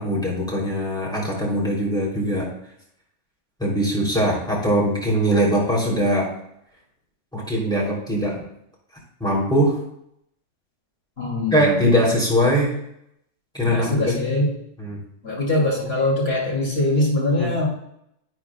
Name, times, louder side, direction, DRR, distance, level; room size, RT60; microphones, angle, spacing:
voice 1, 0.0-2.5 3.6-6.3 7.3-8.4 9.2-9.8 11.5-12.7 13.5-14.1 14.8-15.0 17.4-17.5, equal, 5° left, -5 dB, 3.2 m, -21 dB
voice 2, 11.2-11.8 13.6-14.5 15.2-17.6, left 1 dB, 45° left, -3 dB, 3.2 m, -22 dB
11.0 x 8.5 x 2.4 m, 0.76 s
omnidirectional pair, 1.4 m